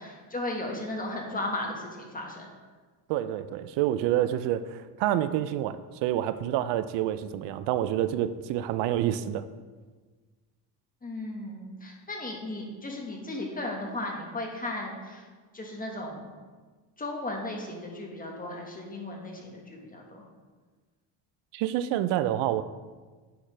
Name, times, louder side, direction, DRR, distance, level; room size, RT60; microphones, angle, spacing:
voice 1, 0.0-2.5 11.0-15.2 15.5-16.3 17.0-20.2, left 2 dB, 20° left, 0 dB, 1.5 m, -35 dB
voice 2, 3.1-9.5 21.5-22.6, right 12 dB, 80° right, 12 dB, 0.5 m, -28 dB
9.5 x 5.7 x 3.3 m, 1.4 s
cardioid pair, 110°, 42 cm